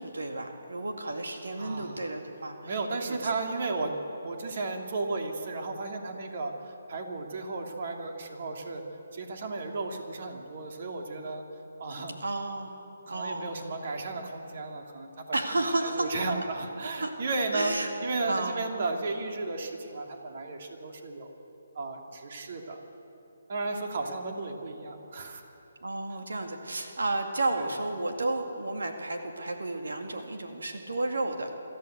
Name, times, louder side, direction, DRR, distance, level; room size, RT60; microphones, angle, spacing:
voice 1, 0.0-3.2 12.2-12.7 13.1-13.7 15.3-16.1 17.0-17.1 17.5-17.9 18.3-18.7 25.8-31.6, right 2 dB, 85° right, 3 dB, 2.1 m, -32 dB
voice 2, 1.6-2.1 2.6-8.8 9.1-11.4 11.8-12.1 13.1-15.4 15.8-17.7 18.0-21.3 21.7-22.8 23.5-25.4 27.6-27.7, right 3 dB, 50° right, 2 dB, 2.7 m, -34 dB
25.5 x 14.0 x 8.0 m, 3.0 s
hypercardioid pair, 155°, 0 cm